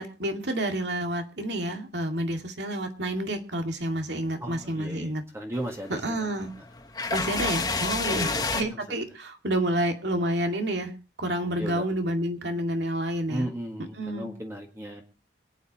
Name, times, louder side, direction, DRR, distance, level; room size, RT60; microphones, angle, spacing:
voice 1, 0.0-5.2 5.9-6.5 7.1-10.9 11.2-13.5 14.0-14.3, right 1 dB, 75° right, 5 dB, 2.3 m, -29 dB
voice 2, 4.4-6.3 8.1-8.5 11.6-11.9 13.3-15.0, right 1 dB, 15° right, 1 dB, 1.8 m, -35 dB
sound 1, 5.5-8.6, left 3 dB, 20° left, 1.3 m, -30 dB
27.0 x 9.4 x 3.0 m, 0.32 s
head